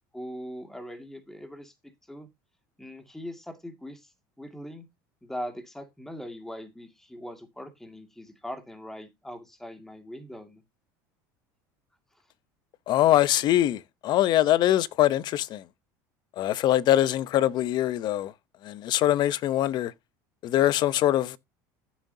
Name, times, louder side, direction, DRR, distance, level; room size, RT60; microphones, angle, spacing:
voice 1, 0.1-1.7 2.1-2.3 2.8-4.1 4.4-4.9 5.2-10.6, equal, 5° left, 2.1 m, -41 dB
voice 2, 12.9-15.6 16.4-18.3 18.6-19.9 20.4-21.4, left 13 dB, 50° left, 0.8 m, -23 dB
15.0 x 7.3 x 2.8 m
supercardioid pair, 110°, 9 cm